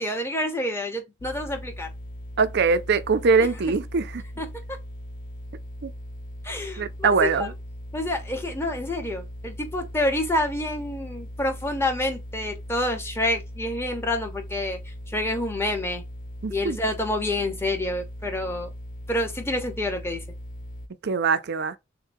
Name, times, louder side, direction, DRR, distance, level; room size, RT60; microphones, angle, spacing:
voice 1, 0.0-1.9 4.4-4.5 6.4-7.5 7.9-14.8 15.1-16.0 16.5-18.7 19.1-20.2, left 1 dB, 15° left, 1.0 m, -28 dB
sound 1, 1.2-20.9, equal, 45° left, 0.4 m, -39 dB
voice 2, 2.4-4.2 5.8-5.9 6.8-7.5 16.4-16.8 21.0-21.7, right 5 dB, 60° right, 0.5 m, -22 dB
6.5 x 2.2 x 2.7 m
head